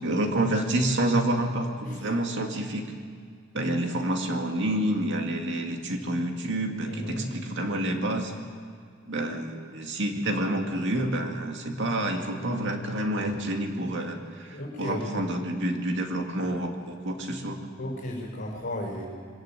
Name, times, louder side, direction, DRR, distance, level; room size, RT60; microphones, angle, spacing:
voice 1, 0.0-2.9 3.5-8.3 9.1-14.5 14.8-17.6, right 1 dB, 60° right, 3 dB, 2.3 m, -28 dB
voice 2, 6.9-7.3 14.5-15.3 17.8-19.0, left 1 dB, 50° left, -4 dB, 5.0 m, -34 dB
22.5 x 14.0 x 9.1 m, 2.1 s
head